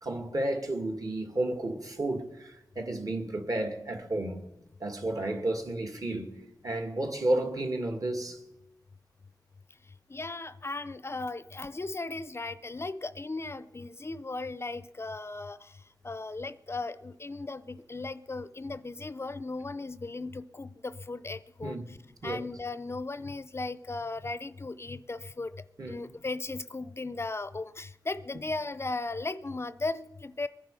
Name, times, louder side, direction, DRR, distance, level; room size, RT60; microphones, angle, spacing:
voice 1, 0.0-4.4 4.8-6.4 6.6-8.4 21.6-21.8 22.2-22.4 25.8-26.0, right 1 dB, 50° right, 2.3 m, -32 dB
voice 2, 10.1-15.6 16.0-21.8 22.2-25.5 25.9-30.5, left 3 dB, 35° left, 0.5 m, -36 dB
22.0 x 10.0 x 5.5 m
wide cardioid pair, 85°, 8 cm